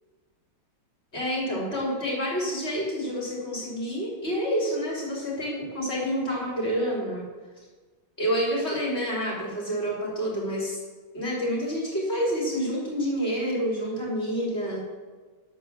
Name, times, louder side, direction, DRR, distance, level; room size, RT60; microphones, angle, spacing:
voice 1, 1.1-7.2 8.2-10.8 11.1-14.8, equal, 30° left, -4 dB, 3.8 m, -28 dB
12.0 x 5.4 x 7.5 m, 1.4 s
omnidirectional pair, 2.2 m